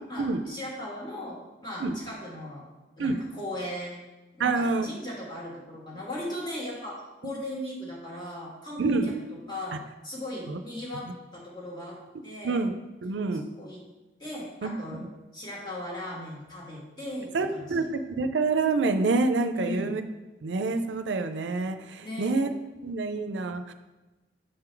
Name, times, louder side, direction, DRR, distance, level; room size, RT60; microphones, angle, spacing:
voice 1, 0.1-2.7 3.0-4.0 4.3-9.1 9.5-9.8 10.0-12.0 12.2-12.6 13.6-13.8 14.2-15.0 15.3-17.8 19.5-19.9 22.0-22.3, left 1 dB, 25° left, -4 dB, 1.5 m, -37 dB
voice 2, 4.4-4.9 8.8-9.1 10.5-10.6 12.1-12.7 13.0-13.4 14.6-15.1 17.3-20.0 20.4-22.5 22.8-23.7, right 3 dB, 90° right, 9 dB, 0.5 m, -27 dB
6.4 x 3.8 x 4.5 m, 1.1 s
head